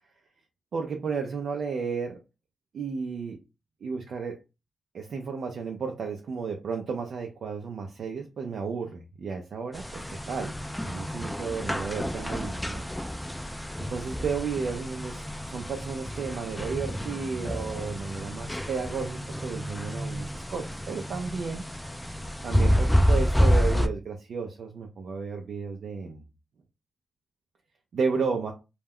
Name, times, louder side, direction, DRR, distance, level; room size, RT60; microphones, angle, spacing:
voice 1, 0.7-2.2 2.7-3.4 3.8-4.4 4.9-10.6 10.8-12.8 13.8-21.6 22.4-26.2 27.9-28.5, right 5 dB, 70° right, 0.4 m, -33 dB
sound 1, 9.7-23.9, equal, 5° left, 0.4 m, -29 dB
2.2 x 2.1 x 3.5 m
supercardioid pair, 50°, 0 cm